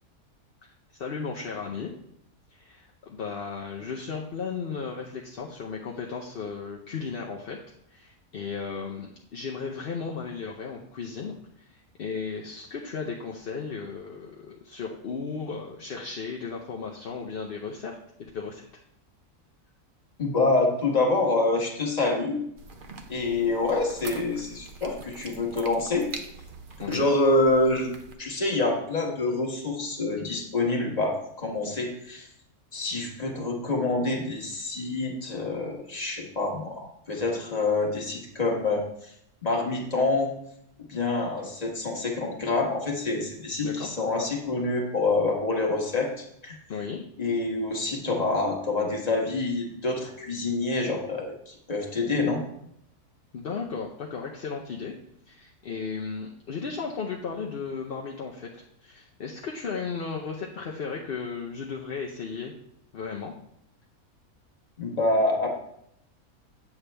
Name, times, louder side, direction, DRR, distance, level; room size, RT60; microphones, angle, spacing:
voice 1, 0.9-1.9 2.5-7.6 7.9-18.0 18.3-18.7 26.8-27.1 43.6-43.9 46.7-47.0 53.3-54.9 55.3-62.5 62.9-63.3, left 5 dB, 50° left, -1 dB, 0.7 m, -35 dB
voice 2, 20.2-22.4 23.1-26.1 26.9-27.9 28.2-32.3 32.7-38.8 39.4-40.3 40.9-46.6 47.2-52.4 64.8-65.5, left 2 dB, 30° left, 0 dB, 1.3 m, -26 dB
sound 1, 22.6-28.1, right 3 dB, 45° right, 0.8 m, -44 dB
8.3 x 7.1 x 3.3 m, 0.73 s
omnidirectional pair, 1.5 m